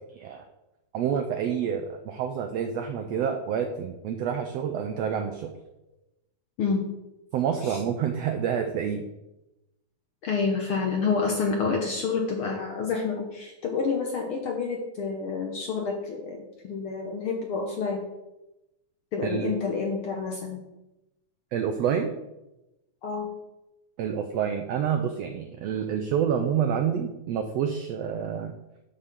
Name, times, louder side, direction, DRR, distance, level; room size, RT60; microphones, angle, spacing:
voice 1, 0.1-0.5 0.9-5.5 7.3-9.0 19.2-19.5 21.5-22.1 24.0-28.5, right 8 dB, 90° right, 6 dB, 1.4 m, -28 dB
voice 2, 10.2-18.1 19.1-20.6 23.0-23.3, left 5 dB, 70° left, 1 dB, 1.3 m, -28 dB
7.9 x 5.7 x 6.7 m, 0.96 s
omnidirectional pair, 3.7 m